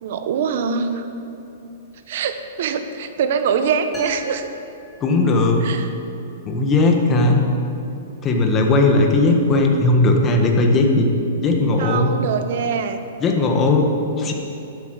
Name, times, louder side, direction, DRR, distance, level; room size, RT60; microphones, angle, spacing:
voice 1, 0.0-1.0 2.1-4.5 5.6-5.9 11.8-13.0, right 6 dB, 60° right, 9 dB, 1.1 m, -23 dB
sound 1, 3.9-5.7, left 1 dB, 5° left, 2.8 m, -39 dB
voice 2, 5.0-5.7 6.5-7.4 8.2-11.1 11.4-12.2 13.2-14.3, left 2 dB, 20° left, 2 dB, 1.6 m, -17 dB
12.0 x 8.8 x 7.7 m, 2.9 s
hypercardioid pair, 150°, 0 cm